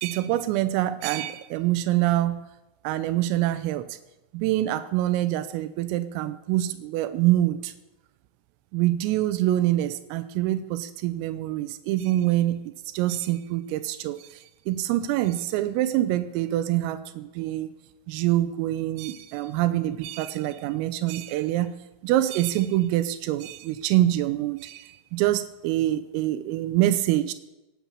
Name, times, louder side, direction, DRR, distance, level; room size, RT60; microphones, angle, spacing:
voice 1, 0.0-2.4 2.9-4.0 4.3-7.7 8.7-12.6 12.9-17.7 18.1-21.7 22.0-27.3, right 14 dB, 90° right, 12 dB, 3.4 m, -25 dB
19.5 x 9.6 x 7.3 m, 0.98 s
omnidirectional pair, 5.8 m